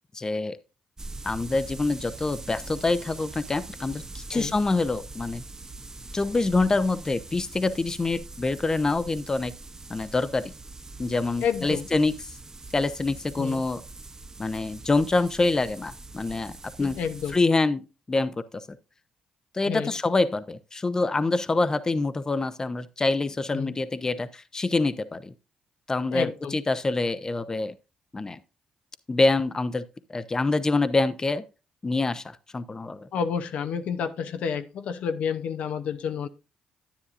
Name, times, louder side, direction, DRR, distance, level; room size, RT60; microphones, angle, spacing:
voice 1, 0.1-0.6 1.2-5.4 6.1-9.5 9.9-10.5 11.0-12.1 12.7-13.8 14.4-16.5 16.8-17.0 17.3-18.7 19.5-25.3 25.9-27.7 28.1-28.4 29.1-29.8 30.1-31.4 31.8-33.1, left 3 dB, 25° left, 0.7 m, -26 dB
sound 1, 1.0-17.4, right 2 dB, 25° right, 0.7 m, -43 dB
voice 2, 11.4-11.9 13.4-13.6 16.8-17.4 19.7-19.9 23.5-23.7 26.1-26.6 33.1-36.3, left 7 dB, 70° left, 0.7 m, -30 dB
10.0 x 9.4 x 2.5 m
supercardioid pair, 65°, 2 cm